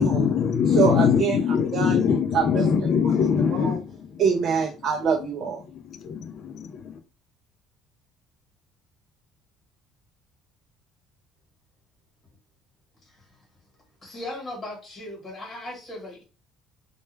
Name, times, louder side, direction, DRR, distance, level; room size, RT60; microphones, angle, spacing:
voice 1, 0.0-4.2 5.7-7.0, left 7 dB, 40° left, 0.3 m, -23 dB
voice 2, 0.7-1.4 1.7-2.0 2.3-2.6 3.5-3.8 4.2-5.6, right 6 dB, 45° right, 0.4 m, -24 dB
voice 3, 14.0-16.2, left 1 dB, 20° left, 1.1 m, -37 dB
2.2 x 2.1 x 3.1 m
cardioid pair, 170°, 0 cm